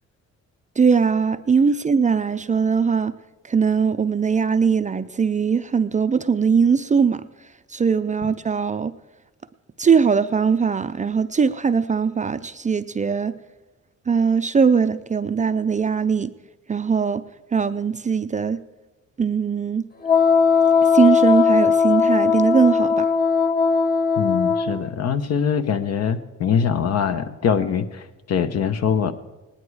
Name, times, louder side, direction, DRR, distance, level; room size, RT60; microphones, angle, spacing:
voice 1, 0.8-3.1 3.5-7.3 7.7-8.9 9.8-13.3 14.1-16.3 16.7-17.2 17.5-18.6 19.2-19.9 20.9-23.1, right 6 dB, 25° right, 0.5 m, -20 dB
Wind instrument woodwind instrument, 20.0-24.8, left 5 dB, 30° left, 1.1 m, -18 dB
voice 2, 24.2-29.1, left 7 dB, 55° left, 1.0 m, -23 dB
18.5 x 10.5 x 4.8 m
cardioid pair, 90°, 30 cm